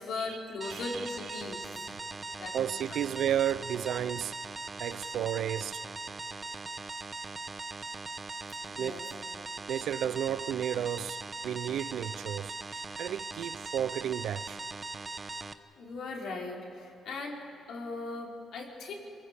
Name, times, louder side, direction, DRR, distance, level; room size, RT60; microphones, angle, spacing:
voice 1, 0.0-1.7 2.4-3.0 8.7-9.0 15.8-17.4 17.7-18.9, left 3 dB, 70° left, 4.7 m, -38 dB
sound 1, 0.6-15.5, right 3 dB, 30° right, 1.1 m, -40 dB
voice 2, 0.7-1.1 1.4-1.5 2.5-4.3 4.8-5.8 8.8-9.0 9.7-14.6, right 10 dB, 75° right, 0.5 m, -33 dB
27.5 x 20.5 x 8.4 m
cardioid pair, 90°, 0 cm